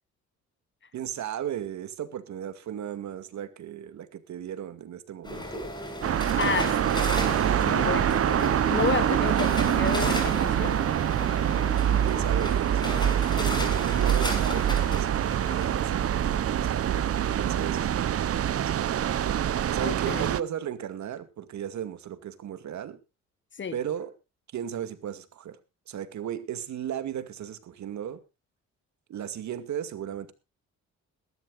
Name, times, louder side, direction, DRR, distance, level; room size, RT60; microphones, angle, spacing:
voice 1, 0.9-5.7 12.0-18.9 19.7-23.0 23.7-24.1 24.5-25.6 25.9-28.2 29.1-30.3, right 9 dB, 65° right, 2.2 m, -36 dB
sound 1, 5.2-18.0, left 1 dB, 15° left, 6.5 m, -36 dB
sound 2, 6.0-20.4, right 10 dB, 50° right, 0.8 m, -25 dB
voice 2, 6.4-6.8 7.6-10.8 19.8-20.3 23.6-23.8, left 6 dB, 40° left, 1.4 m, -31 dB
21.5 x 12.5 x 2.5 m
cardioid pair, 90°, 30 cm